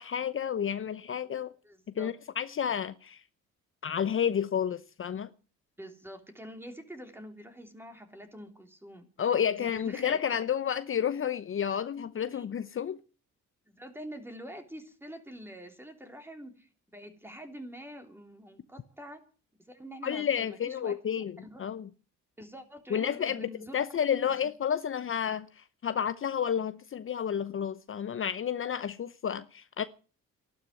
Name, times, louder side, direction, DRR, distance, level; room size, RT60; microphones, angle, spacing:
voice 1, 0.0-1.5 1.9-3.2 3.8-5.3 9.2-13.0 20.0-21.9 22.9-29.8, left 8 dB, 45° left, 0.8 m, -31 dB
voice 2, 1.6-2.1 5.8-9.1 9.4-10.4 12.3-12.5 13.7-19.2 19.6-21.6 22.4-24.0, equal, 5° right, 3.4 m, -46 dB
13.0 x 12.0 x 7.8 m
cardioid pair, 100°, 31 cm